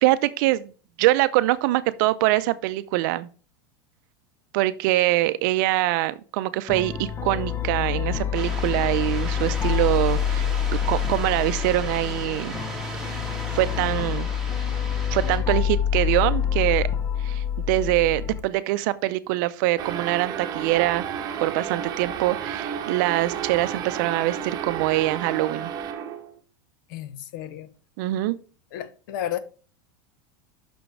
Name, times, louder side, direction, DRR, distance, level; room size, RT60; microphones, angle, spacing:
voice 1, 0.0-0.7 1.0-3.3 4.5-10.5 10.9-12.5 13.0-13.2 13.5-14.3 15.1-16.9 17.2-21.0 21.4-25.7 28.0-28.4, right 17 dB, 60° right, 0.5 m, -24 dB
sound 1, 6.7-18.4, left 9 dB, 20° left, 0.6 m, -27 dB
sound 2, 8.3-15.4, right 2 dB, 5° right, 2.2 m, -36 dB
sound 3, 19.8-26.4, right 8 dB, 35° right, 1.1 m, -32 dB
voice 2, 26.9-27.7 28.7-29.4, left 11 dB, 70° left, 0.8 m, -32 dB
6.1 x 5.1 x 4.8 m
supercardioid pair, 140°, 11 cm